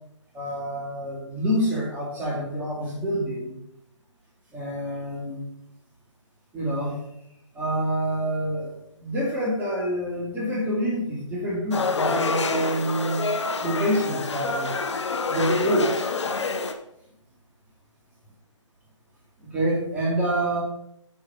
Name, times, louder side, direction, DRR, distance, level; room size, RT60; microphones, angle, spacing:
voice 1, 0.3-3.6 4.5-5.4 6.5-7.0 7.5-8.7 9.0-13.2 13.6-14.7 15.3-16.1 19.4-20.6, right 1 dB, 10° right, -5 dB, 2.3 m, -27 dB
sound 1, 11.7-16.7, left 4 dB, 65° left, 1.1 m, -27 dB
8.6 x 4.8 x 5.8 m, 0.80 s
figure-of-eight pair, 150°, 16 cm